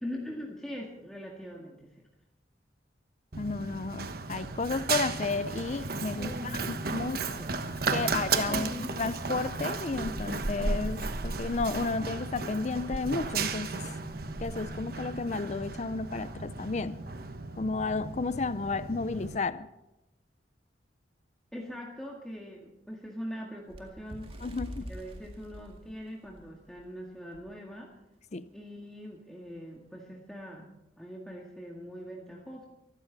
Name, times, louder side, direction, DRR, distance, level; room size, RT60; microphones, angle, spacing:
voice 1, 0.0-2.1 6.1-7.5 8.0-8.2 8.5-8.9 21.5-24.3 24.9-27.9 28.5-30.7 31.0-32.7, equal, 5° left, -2 dB, 2.0 m, -42 dB
Run, 3.3-19.4, right 4 dB, 55° right, 1.2 m, -34 dB
voice 2, 3.4-7.2 7.9-13.8 14.4-17.0 17.6-19.7 24.4-24.9 28.3-28.5, left 3 dB, 40° left, 15 dB, 0.5 m, -32 dB
Bird, 23.7-26.9 27.3-27.5 27.8-28.0 28.8-28.9, equal, 30° right, 2.1 m, -44 dB
24.5 x 13.0 x 4.1 m, 0.95 s
head